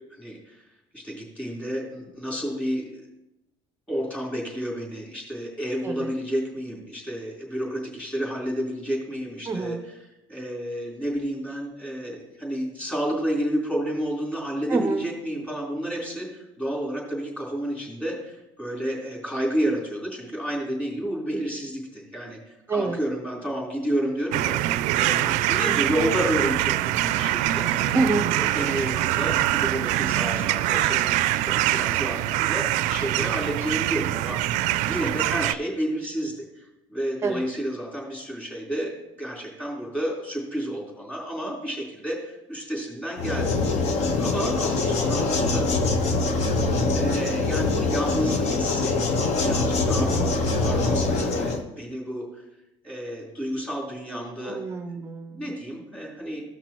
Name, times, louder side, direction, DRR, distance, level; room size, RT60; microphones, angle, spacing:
voice 1, 0.1-0.6 0.9-3.0 3.9-27.9 28.3-31.1 31.4-43.6 44.2-45.7 46.9-49.0 49.4-52.3 52.8-54.6 55.3-56.4, equal, 10° left, -4 dB, 3.7 m, -31 dB
voice 2, 9.5-9.8 14.7-15.0 22.7-23.0 27.9-28.3 37.2-37.4 49.9-50.3 54.5-55.4, right 3 dB, 20° right, 7 dB, 0.6 m, -26 dB
sound 1, 24.3-35.6, right 14 dB, 75° right, 0.4 m, -24 dB
sound 2, 43.2-51.6, left 3 dB, 60° left, 1.2 m, -24 dB
15.0 x 5.9 x 3.0 m, 0.94 s
cardioid pair, 120°, 13 cm